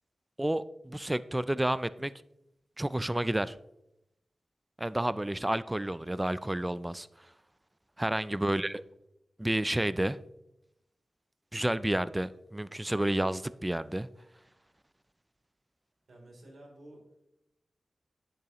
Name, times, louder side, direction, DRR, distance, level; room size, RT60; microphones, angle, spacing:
voice 1, 0.4-2.1 2.8-3.5 4.8-7.1 8.0-8.8 9.4-10.2 11.5-14.1, right 1 dB, 15° right, 16 dB, 0.3 m, -30 dB
voice 2, 8.5-8.9 16.1-17.0, right 1 dB, 80° right, -1 dB, 3.1 m, -53 dB
11.0 x 8.4 x 3.0 m, 0.86 s
wide cardioid pair, 75°, 0 cm